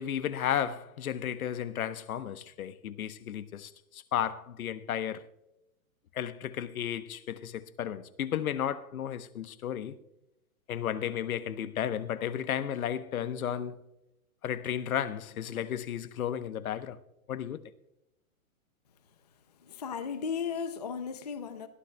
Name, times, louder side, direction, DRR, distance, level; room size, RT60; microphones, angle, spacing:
voice 1, 0.0-5.2 6.1-10.0 10.7-13.8 14.4-17.0 17.3-17.6, left 9 dB, 80° left, 1.0 m, -33 dB
voice 2, 19.6-21.7, left 6 dB, 30° left, 0.4 m, -35 dB
22.5 x 13.5 x 2.2 m
hypercardioid pair, 175°, 42 cm